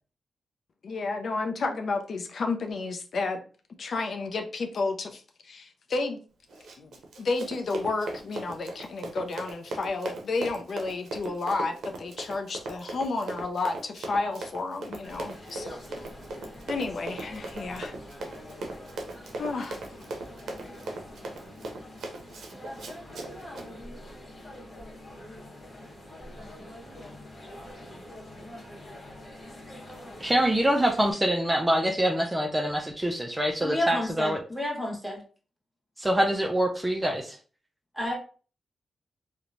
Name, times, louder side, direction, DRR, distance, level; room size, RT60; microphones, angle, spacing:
voice 1, 0.8-3.4 3.8-6.2 6.8-6.9 7.2-15.8 16.7-18.0 19.4-19.8, left 3 dB, 65° left, 4 dB, 0.4 m, -31 dB
Run, 6.5-23.7, right 2 dB, 80° right, 0.5 m, -39 dB
sound 1, 15.0-31.1, left 1 dB, 45° left, 1.0 m, -45 dB
voice 2, 30.2-34.4 36.0-37.4, right 1 dB, 15° right, 2 dB, 0.4 m, -25 dB
voice 3, 33.6-35.2 38.0-38.1, left 1 dB, ahead, -1 dB, 1.1 m, -30 dB
2.8 x 2.1 x 2.5 m, 0.39 s
cardioid pair, 60°, 0 cm